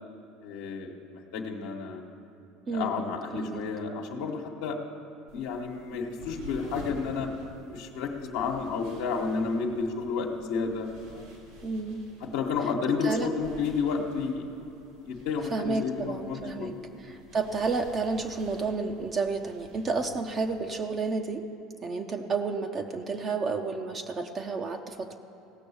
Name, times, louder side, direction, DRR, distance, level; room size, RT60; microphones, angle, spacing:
voice 1, 0.4-0.9 1.3-2.0 2.7-4.8 5.3-7.3 7.7-11.2 12.2-14.5 15.0-16.7 17.0-17.1, left 5 dB, 80° left, -1 dB, 1.1 m, -31 dB
voice 2, 2.7-3.6 11.6-12.0 13.0-13.3 15.5-16.7 17.0-21.4 21.8-25.1, right 4 dB, 35° right, 4 dB, 0.7 m, -31 dB
sound 1, 5.3-20.9, right 1 dB, 80° right, 3.0 m, -50 dB
17.0 x 6.2 x 7.1 m, 2.7 s
supercardioid pair, 100°, 0 cm